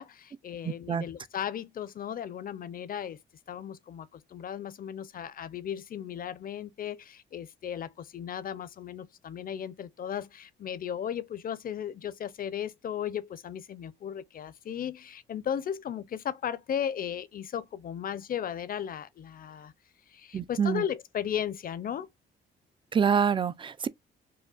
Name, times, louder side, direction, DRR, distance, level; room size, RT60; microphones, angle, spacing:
voice 1, 0.0-3.2 3.5-19.7 20.1-22.1, left 9 dB, 45° left, 0.5 m, -36 dB
voice 2, 0.6-1.0 20.3-20.8 22.9-23.9, right 7 dB, 25° right, 0.3 m, -26 dB
4.9 x 2.2 x 2.3 m
cardioid pair, 90°, 20 cm